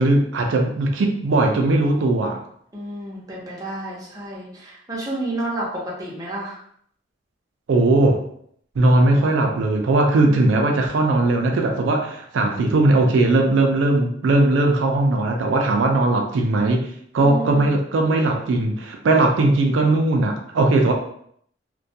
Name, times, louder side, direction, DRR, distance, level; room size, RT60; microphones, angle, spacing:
voice 1, 0.0-2.4 7.7-8.2 8.8-16.9 17.1-20.9, right 2 dB, 85° right, 2 dB, 0.4 m, -19 dB
voice 2, 2.7-6.6 17.2-17.8, right 1 dB, 20° right, -5 dB, 0.6 m, -31 dB
2.3 x 2.1 x 2.7 m, 0.66 s
head